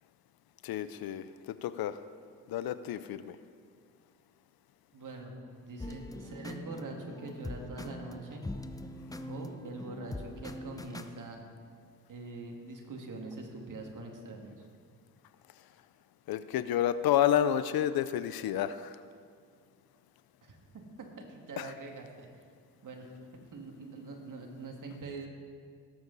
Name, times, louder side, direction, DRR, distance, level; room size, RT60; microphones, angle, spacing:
voice 1, 0.6-2.0 2.5-3.4 16.3-18.9 21.6-21.7, left 10 dB, 70° left, 13 dB, 0.6 m, -30 dB
voice 2, 4.9-8.5 9.3-11.5 12.1-14.5 20.4-20.6 21.2-22.3 22.8-23.1 23.5-25.3, right 3 dB, 55° right, 2 dB, 2.1 m, -43 dB
sound 1, 5.8-11.1, left 1 dB, 10° left, 0.6 m, -42 dB
17.5 x 7.8 x 4.0 m, 2.1 s
cardioid pair, 70°, 37 cm